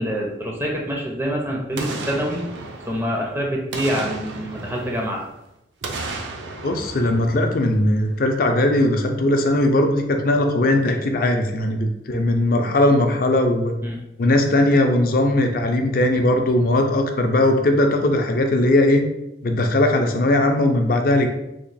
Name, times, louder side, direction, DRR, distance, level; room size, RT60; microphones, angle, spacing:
voice 1, 0.0-2.4 2.9-5.2 13.8-14.0, equal, 15° right, -1 dB, 0.4 m, -26 dB
Boom, 1.8-3.3 3.7-5.4 5.8-8.1 8.4-8.5, right 2 dB, 80° right, 0.5 m, -33 dB
voice 2, 6.6-13.8 14.2-19.0 19.4-21.3, left 1 dB, 50° left, 4 dB, 0.4 m, -19 dB
2.9 x 2.3 x 4.0 m, 0.87 s
head